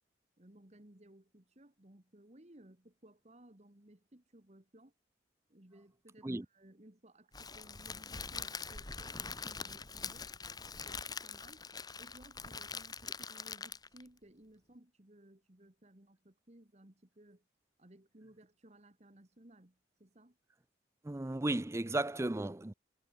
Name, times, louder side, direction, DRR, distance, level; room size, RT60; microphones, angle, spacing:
voice 1, 0.4-4.9 5.5-10.3 10.7-11.7 12.0-17.5 17.8-20.4, right 1 dB, 40° right, 1.9 m, -60 dB
Crackle, 7.3-14.1, left 5 dB, 20° left, 1.5 m, -44 dB
voice 2, 21.0-22.7, right 2 dB, 15° right, 0.5 m, -34 dB
head